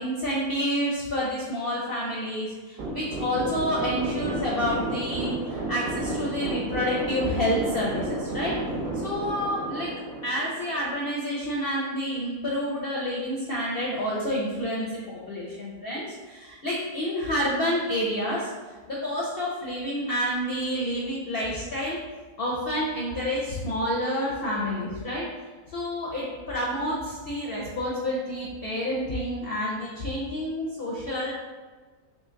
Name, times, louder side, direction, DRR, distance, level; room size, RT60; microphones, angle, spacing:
voice 1, 0.0-8.6 8.9-9.9 10.2-18.5 18.9-22.0 22.4-25.3 25.7-31.3, equal, 60° left, -5 dB, 0.6 m, -29 dB
sound 1, 2.8-11.1, right 1 dB, 60° right, 1.0 m, -32 dB
3.1 x 3.0 x 3.6 m, 1.3 s
omnidirectional pair, 1.6 m